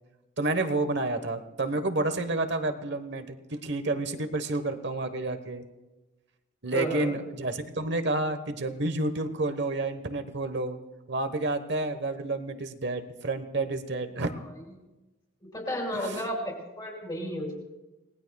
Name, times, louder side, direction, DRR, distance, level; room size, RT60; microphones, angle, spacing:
voice 1, 0.4-5.6 6.6-10.8 11.1-14.3 15.9-16.2, right 2 dB, 55° right, 9 dB, 1.2 m, -30 dB
voice 2, 6.7-7.2 15.4-17.6, equal, 20° left, -1 dB, 5.4 m, -32 dB
29.0 x 19.5 x 2.3 m, 1.1 s
head